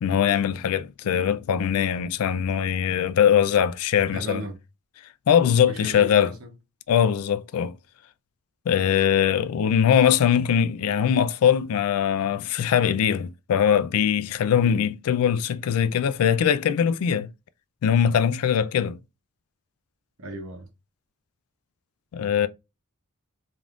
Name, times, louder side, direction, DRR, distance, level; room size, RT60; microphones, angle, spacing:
voice 1, 0.0-4.4 5.3-6.3 6.9-7.7 8.7-17.3 17.8-19.0 22.1-22.5, left 8 dB, 70° left, 0.3 m, -21 dB
voice 2, 4.1-4.6 5.7-6.5 14.5-14.7 20.2-20.7, right 1 dB, 65° right, 0.9 m, -36 dB
3.3 x 2.6 x 2.3 m
head